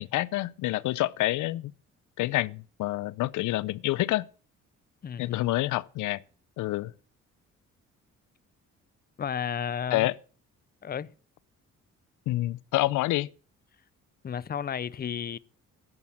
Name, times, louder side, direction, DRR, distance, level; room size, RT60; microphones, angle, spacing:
voice 1, 0.0-1.7 2.2-4.3 5.2-6.2 6.6-6.9 9.9-10.1 12.3-13.3, left 17 dB, 80° left, 0.5 m, -27 dB
voice 2, 5.0-5.4 9.2-10.1 10.8-11.1 14.2-15.4, left 8 dB, 30° left, 0.6 m, -33 dB
10.5 x 8.5 x 7.4 m
cardioid pair, 90°, 30 cm